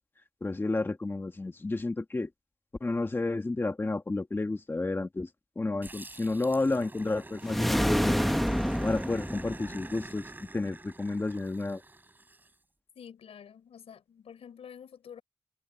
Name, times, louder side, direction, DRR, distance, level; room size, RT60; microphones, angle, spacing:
voice 1, 0.4-2.3 2.8-5.3 5.6-8.2 8.8-11.8, left 2 dB, 20° left, 1.8 m, -31 dB
Growling, 5.8-12.5, right 2 dB, 20° right, 7.9 m, -47 dB
sound 1, 7.4-10.0, equal, ahead, 1.1 m, -28 dB
voice 2, 12.9-15.2, left 8 dB, 75° left, 4.4 m, -48 dB
wide cardioid pair, 110°, 10 cm